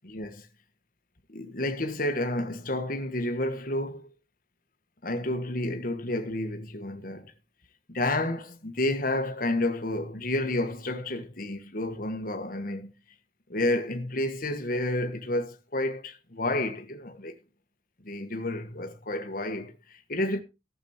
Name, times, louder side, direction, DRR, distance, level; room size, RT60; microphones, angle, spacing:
voice 1, 0.0-0.5 1.3-4.1 5.0-7.3 7.9-12.9 13.5-17.3 18.0-20.4, left 1 dB, 50° left, 1.6 m, -30 dB
14.5 x 7.4 x 4.4 m
head